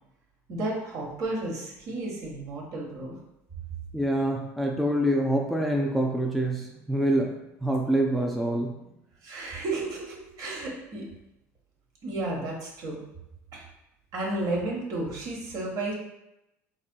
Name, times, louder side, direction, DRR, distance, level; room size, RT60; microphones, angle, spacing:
voice 1, 0.5-3.1 9.2-11.0 12.0-13.0 13.5-13.6 14.1-15.9, right 2 dB, 55° right, -2 dB, 1.1 m, -32 dB
voice 2, 3.9-7.3 7.6-8.8, right 1 dB, ahead, -1 dB, 0.4 m, -26 dB
3.9 x 2.7 x 2.2 m, 0.89 s
supercardioid pair, 85°, 7 cm